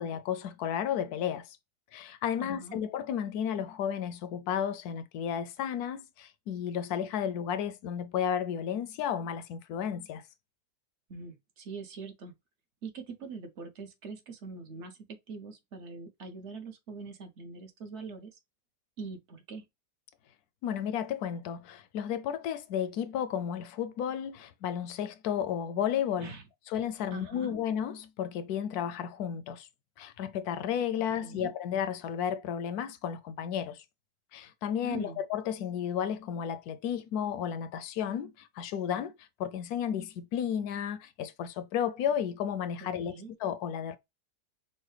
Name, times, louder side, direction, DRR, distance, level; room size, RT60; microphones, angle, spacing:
voice 1, 0.0-1.6 1.9-10.2 20.6-26.3 26.7-29.7 30.0-33.8 34.3-43.1 43.4-44.0, left 9 dB, 75° left, 1.0 m, -33 dB
voice 2, 2.4-2.8 11.1-12.3 12.8-18.4 19.0-19.6 26.2-26.5 27.1-27.6 31.0-31.5 34.8-35.2 42.8-43.3, right 4 dB, 50° right, 0.9 m, -43 dB
5.5 x 2.2 x 3.2 m
omnidirectional pair, 1.8 m